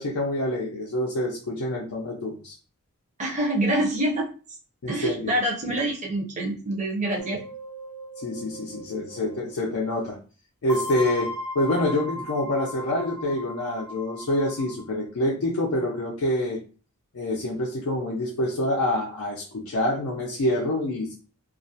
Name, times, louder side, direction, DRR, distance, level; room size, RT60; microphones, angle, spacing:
voice 1, 0.0-2.5 4.8-5.3 8.2-10.2 10.6-16.6 17.1-21.1, left 1 dB, 70° left, -3 dB, 0.5 m, -26 dB
voice 2, 3.2-4.3 4.9-7.4, right 1 dB, 30° right, 0 dB, 0.5 m, -26 dB
sound 1, 7.2-9.5 10.7-14.9, left 1 dB, 20° left, 0.5 m, -37 dB
2.4 x 2.0 x 2.6 m, 0.36 s
head